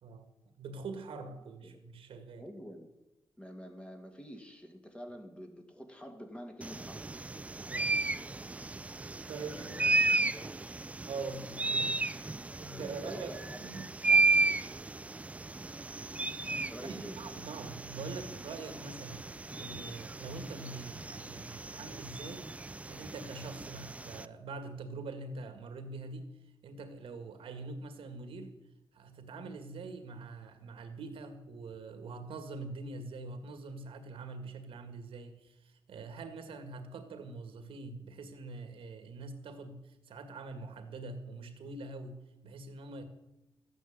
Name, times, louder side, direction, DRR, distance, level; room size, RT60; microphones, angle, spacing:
voice 1, 0.6-2.4 7.7-7.9 9.3-9.9 11.1-12.0 12.6-13.9 16.8-22.5 22.9-26.3 26.6-28.6 28.9-43.0, right 3 dB, 80° right, 2.0 m, -44 dB
voice 2, 2.4-2.9 3.4-7.1 9.4-10.0 10.3-10.6 11.2-11.9 12.5-14.3 16.7-17.2, equal, 10° left, 2.3 m, -48 dB
sound 1, 6.6-24.3, right 3 dB, 15° right, 0.4 m, -34 dB
13.5 x 9.2 x 8.8 m
wide cardioid pair, 135°, 9 cm